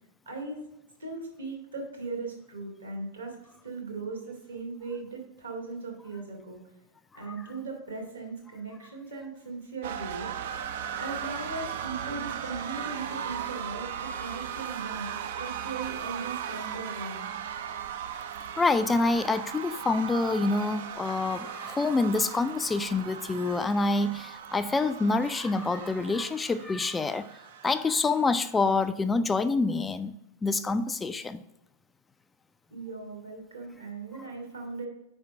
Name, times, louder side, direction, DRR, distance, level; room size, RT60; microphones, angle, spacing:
voice 1, 0.3-0.6 1.0-3.3 3.6-6.6 7.1-10.3 11.0-17.2 32.7-34.9, right 3 dB, 80° right, 0 dB, 2.1 m, -38 dB
sound 1, 9.8-28.9, right 9 dB, 55° right, 0.4 m, -38 dB
voice 2, 18.6-27.3 27.6-31.4, left 3 dB, 15° left, 11 dB, 0.3 m, -27 dB
5.0 x 4.4 x 5.9 m, 0.84 s
figure-of-eight pair, 90°, 0 cm